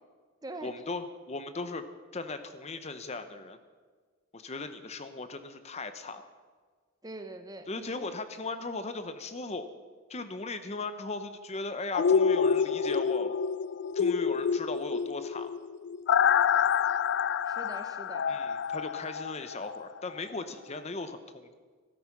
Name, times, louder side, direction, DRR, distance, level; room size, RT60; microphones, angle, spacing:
voice 1, 0.6-1.8 2.1-3.6 4.3-6.3 7.7-9.7 10.1-13.4 13.9-15.6 18.3-21.5, left 3 dB, 30° left, 10 dB, 0.7 m, -37 dB
voice 2, 7.0-8.1 17.4-18.3, right 2 dB, 20° right, 8 dB, 0.8 m, -43 dB
sound 1, 11.9-19.8 20.2-20.3, left 7 dB, 55° left, 0.3 m, -27 dB
14.0 x 13.0 x 6.0 m, 1.5 s
head